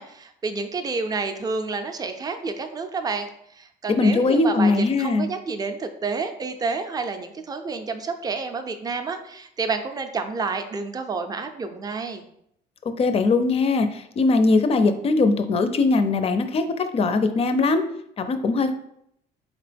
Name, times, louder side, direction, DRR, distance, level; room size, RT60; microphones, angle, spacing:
voice 1, 0.0-12.2, right 4 dB, 20° right, 7 dB, 0.4 m, -29 dB
voice 2, 3.9-5.3 13.0-17.8 18.2-18.7, left 3 dB, 35° left, 9 dB, 0.4 m, -20 dB
4.1 x 2.9 x 3.3 m, 0.75 s
cardioid pair, 110°, 17 cm